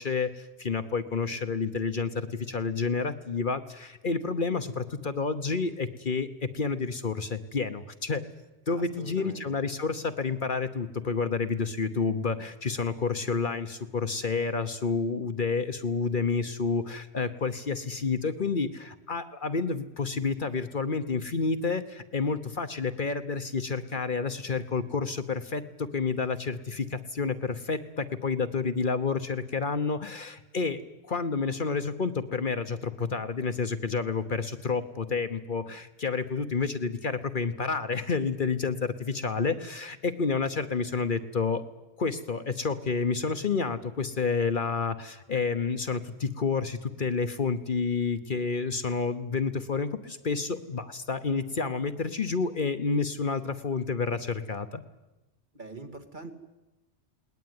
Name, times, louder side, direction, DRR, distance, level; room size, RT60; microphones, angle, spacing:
voice 1, 0.0-8.2 8.7-30.8 31.1-41.6 42.0-54.8, left 4 dB, 50° left, 10 dB, 1.1 m, -29 dB
voice 2, 8.7-9.5 55.5-56.4, right 3 dB, 45° right, 6 dB, 2.3 m, -43 dB
20.5 x 19.0 x 9.5 m, 1.0 s
omnidirectional pair, 1.1 m